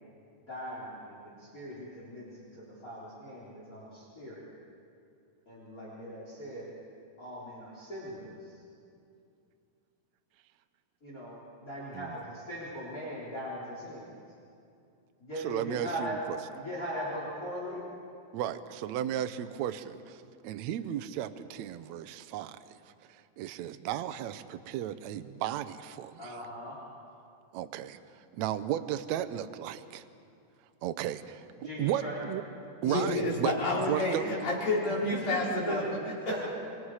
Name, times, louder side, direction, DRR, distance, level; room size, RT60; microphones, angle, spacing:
voice 1, 0.5-4.5 5.5-6.7 7.2-8.4 11.0-14.1 15.2-16.2 16.5-17.8 26.2-26.8 31.6-32.2 34.1-34.4 35.1-35.8 36.2-36.4, equal, 25° left, -6 dB, 4.2 m, -39 dB
voice 2, 15.4-16.4 18.3-26.4 27.5-30.0 30.8-32.4 32.8-34.2, right 11 dB, 80° right, 11 dB, 1.7 m, -35 dB
voice 3, 32.8-36.3, left 2 dB, 75° left, -6 dB, 6.9 m, -30 dB
26.0 x 23.5 x 4.9 m, 2.5 s
omnidirectional pair, 4.0 m